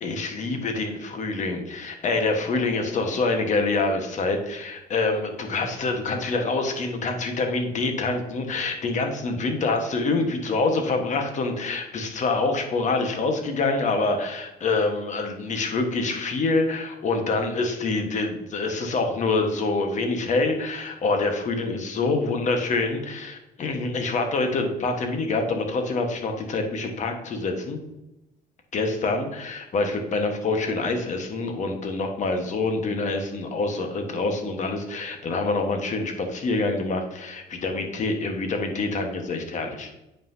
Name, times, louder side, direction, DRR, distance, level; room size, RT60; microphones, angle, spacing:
voice 1, 0.0-27.8 28.7-39.9, left 3 dB, 45° left, 4 dB, 1.4 m, -26 dB
8.7 x 5.7 x 2.8 m, 0.92 s
cardioid pair, 110°, 17 cm